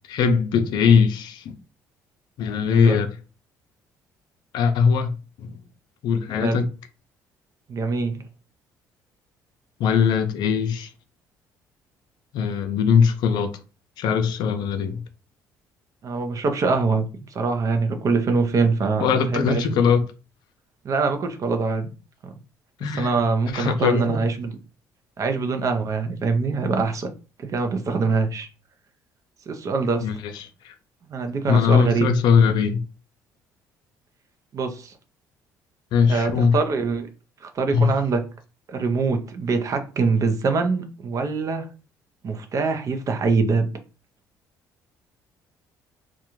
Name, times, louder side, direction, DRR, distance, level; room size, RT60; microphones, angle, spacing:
voice 1, 0.1-1.6 2.4-3.2 4.5-5.5 6.0-6.7 9.8-10.9 12.3-13.6 14.0-15.0 19.0-20.0 22.8-23.3 23.5-24.2 30.0-30.7 31.5-32.8 35.9-36.5 37.7-37.9, left 6 dB, 70° left, 0.4 m, -20 dB
voice 2, 2.7-3.0 6.4-6.6 7.7-8.2 16.0-19.8 20.8-21.9 22.2-22.3 23.0-24.5 25.2-27.1 27.4-28.5 29.5-30.1 31.1-32.1 34.5-34.9 36.1-37.1 37.4-38.2 38.7-41.7 42.2-43.7, right 4 dB, 45° right, 0.6 m, -24 dB
2.5 x 2.2 x 3.0 m
supercardioid pair, 80°, 8 cm